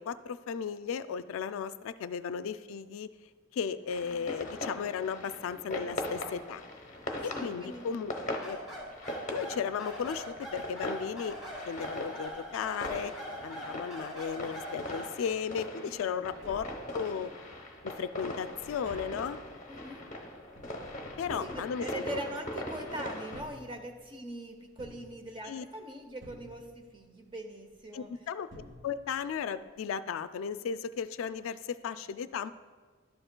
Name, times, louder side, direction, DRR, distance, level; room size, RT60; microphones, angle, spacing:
voice 1, 0.0-3.1 3.5-6.6 7.2-8.1 8.4-8.6 9.3-11.4 11.7-13.1 13.4-17.3 17.8-19.4 21.2-22.0 25.5-25.6 27.9-28.5 28.8-32.5, left 7 dB, 90° left, 13 dB, 0.3 m, -35 dB
sound 1, 3.9-23.4, left 1 dB, 35° left, 0.8 m, -41 dB
voice 2, 3.9-4.5 7.3-7.9 15.7-16.0 16.4-16.7 19.7-20.0 21.4-28.1, right 1 dB, 25° right, 4 dB, 0.6 m, -42 dB
sound 2, 8.4-15.1, equal, ahead, 1.9 m, -42 dB
Tap, 16.4-17.4 17.8-22.6 23.2-24.2 24.8-25.7 26.2-27.0 28.1-28.2 28.5-29.3 29.6-29.7, left 1 dB, 60° right, 1.4 m, -52 dB
11.5 x 7.8 x 2.2 m, 1.4 s
head